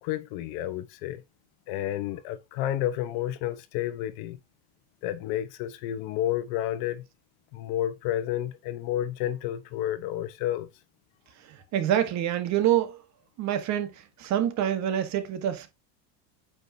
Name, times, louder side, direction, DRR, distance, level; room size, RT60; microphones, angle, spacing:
voice 1, 0.0-1.2 1.7-4.4 5.0-7.0 7.5-10.7, left 12 dB, 70° left, 1.1 m, -30 dB
voice 2, 11.7-13.0 13.4-15.7, right 11 dB, 45° right, 1.5 m, -26 dB
8.5 x 5.1 x 2.8 m
cardioid pair, 140°, 37 cm